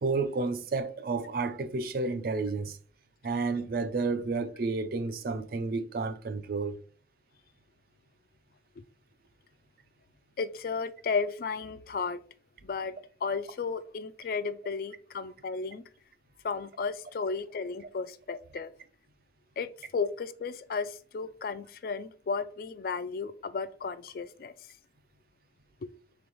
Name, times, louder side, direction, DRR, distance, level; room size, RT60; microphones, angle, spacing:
voice 1, 0.0-2.8 3.2-6.8, right 3 dB, 50° right, 0.4 m, -31 dB
voice 2, 10.4-12.2 12.6-15.8 16.4-18.7 19.6-24.5 25.8-25.9, left 5 dB, 50° left, 0.3 m, -34 dB
3.4 x 3.1 x 3.9 m
head